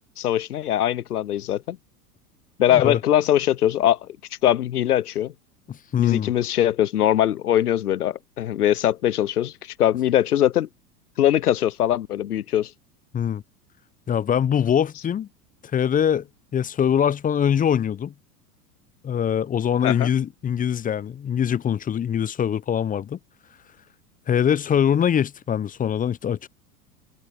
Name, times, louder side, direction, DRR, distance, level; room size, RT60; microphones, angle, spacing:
voice 1, 0.2-1.8 2.6-4.1 4.4-5.3 6.0-10.7 11.2-12.7 19.8-20.1, left 11 dB, 80° left, 0.9 m, -21 dB
voice 2, 2.7-3.0 5.7-6.3 13.1-13.4 14.1-15.3 15.7-16.3 16.5-18.1 19.0-23.2 24.3-26.5, left 8 dB, 20° left, 0.8 m, -23 dB
figure-of-eight pair, 85°, 45 cm